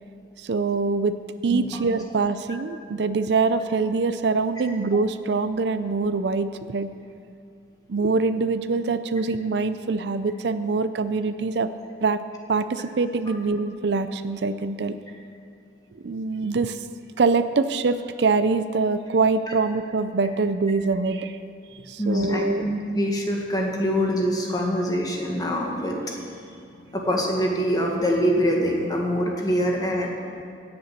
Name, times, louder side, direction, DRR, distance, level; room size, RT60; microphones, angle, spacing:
voice 1, 0.4-1.2 1.4-6.9 7.9-11.7 12.0-12.2 12.5-15.0 15.9-16.8 17.2-21.4 21.9-22.7, right 4 dB, 70° right, 12 dB, 0.5 m, -24 dB
voice 2, 22.0-26.2 26.9-30.2, equal, 20° left, -1 dB, 1.7 m, -24 dB
17.0 x 6.9 x 6.6 m, 2.6 s
head